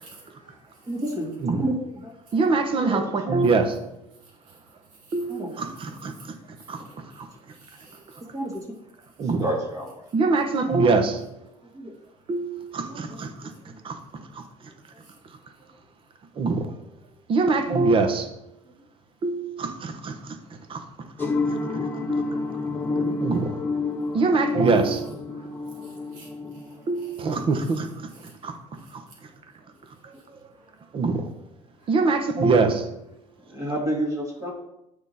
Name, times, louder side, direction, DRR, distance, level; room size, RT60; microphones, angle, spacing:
voice 1, 0.0-0.9 7.1-7.2 7.6-8.0 25.8-26.3 28.3-28.4 31.8-31.9, right 3 dB, 85° right, 2.9 m, -51 dB
voice 2, 0.9-2.1 2.8-3.4 5.3-5.6 6.8-6.9 8.3-8.7 9.4-10.0 11.7-11.9 12.9-13.8 14.9-15.0 15.6-15.7 33.5-34.5, right 1 dB, 30° right, 2.1 m, -31 dB
voice 3, 2.3-3.7 5.1-5.4 9.2-9.4 10.1-11.1 12.3-12.6 16.4-16.6 17.3-18.2 19.2-19.5 23.2-23.4 24.1-25.0 26.9-27.8 31.0-31.1 31.9-32.8, right 3 dB, 45° right, 1.1 m, -21 dB
sound 1, 21.2-27.4, left 3 dB, 15° left, 1.2 m, -29 dB
8.9 x 4.9 x 4.2 m
cardioid pair, 120°, 13 cm